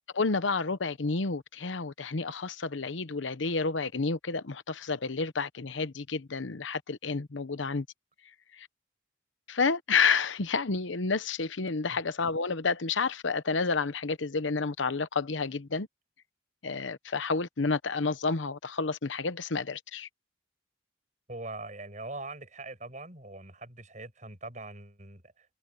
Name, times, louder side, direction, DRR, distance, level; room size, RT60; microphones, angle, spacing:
voice 1, 0.1-7.9 8.6-8.7 9.5-15.9 16.6-20.1, left 4 dB, 85° left, 1.0 m, -30 dB
voice 2, 21.3-25.5, right 2 dB, 40° right, 7.2 m, -42 dB
head